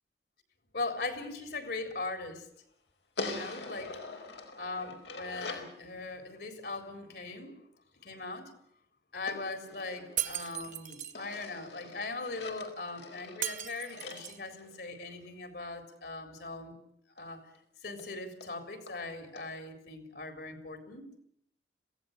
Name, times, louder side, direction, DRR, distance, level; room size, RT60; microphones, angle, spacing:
voice 1, 0.7-2.5 3.2-4.0 4.6-7.5 7.9-8.5 9.1-16.7 17.2-17.4 17.8-21.1, left 3 dB, 65° left, 8 dB, 4.1 m, -40 dB
sound 1, 3.2-5.8 9.3-10.7 11.1-15.3 17.2-17.3 17.6-17.7 18.0-18.1 18.4-18.5 18.9-19.0 19.4-19.5, left 3 dB, 90° left, 4.8 m, -43 dB
Shatter, 10.2-11.2 13.4-14.5, right 12 dB, 45° right, 1.5 m, -37 dB
26.5 x 17.0 x 8.3 m, 0.72 s
head